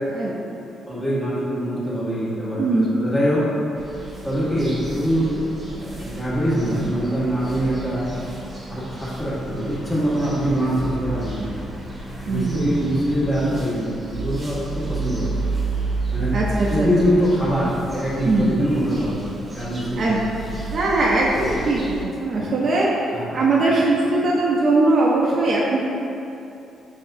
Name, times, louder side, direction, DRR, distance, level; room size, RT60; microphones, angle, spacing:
voice 1, 0.1-0.6 2.6-2.9 12.3-12.9 16.3-16.9 18.2-18.6 19.9-20.2 20.7-22.9 23.3-25.8, right 2 dB, 50° right, -4 dB, 0.5 m, -20 dB
voice 2, 0.9-3.4 4.2-8.0 8.7-11.4 12.2-14.6 14.9-15.4 16.1-16.3 16.7-20.2 20.5-20.6 21.3-21.4 22.4-22.5 23.1-23.4, equal, 15° left, -8 dB, 1.4 m, -23 dB
sound 1, 3.8-22.0, right 2 dB, 25° right, 1.0 m, -32 dB
5.3 x 3.5 x 2.7 m, 2.7 s
cardioid pair, 90°, 0 cm